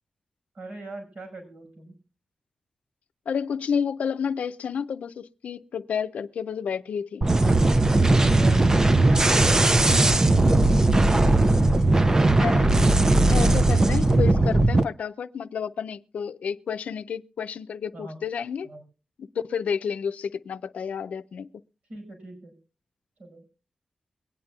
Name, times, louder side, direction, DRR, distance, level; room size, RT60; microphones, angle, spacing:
voice 1, 0.5-2.0 8.2-11.1 11.6-12.6 17.9-18.2 18.6-18.8 21.9-22.6 23.2-23.5, right 2 dB, 75° right, 5.5 m, -42 dB
voice 2, 3.3-7.3 12.4-12.7 13.3-18.7 19.2-21.5, left 7 dB, 80° left, 0.4 m, -30 dB
sound 1, 7.2-14.8, right 2 dB, 25° right, 0.5 m, -18 dB
23.0 x 8.8 x 2.4 m
cardioid pair, 75°, 2 cm